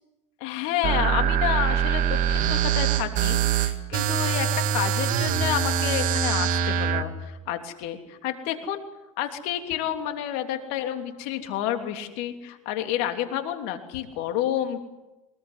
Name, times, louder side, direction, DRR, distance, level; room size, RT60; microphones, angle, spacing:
voice 1, 0.4-8.8 9.2-14.8, left 11 dB, 70° left, 5 dB, 3.2 m, -29 dB
sound 1, 0.8-7.0, right 8 dB, 55° right, 2.0 m, -24 dB
23.5 x 21.0 x 8.1 m, 1.0 s
hypercardioid pair, 85°, 16 cm